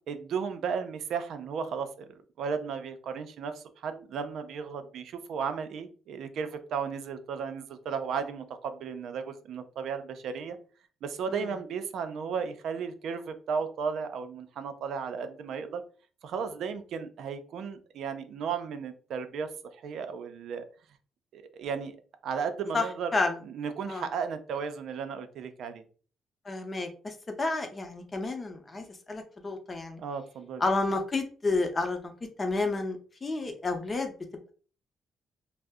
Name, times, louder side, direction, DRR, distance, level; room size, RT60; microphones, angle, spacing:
voice 1, 0.1-1.9 2.4-10.6 11.0-15.8 16.2-19.5 19.8-20.6 21.3-22.0 22.2-23.1 23.4-25.8 30.0-30.6, right 6 dB, 75° right, 8 dB, 0.4 m, -34 dB
voice 2, 26.5-30.0 30.6-32.1 32.4-34.1, left 3 dB, 30° left, 5 dB, 0.7 m, -30 dB
2.6 x 2.0 x 3.5 m, 0.40 s
cardioid pair, 90°, 0 cm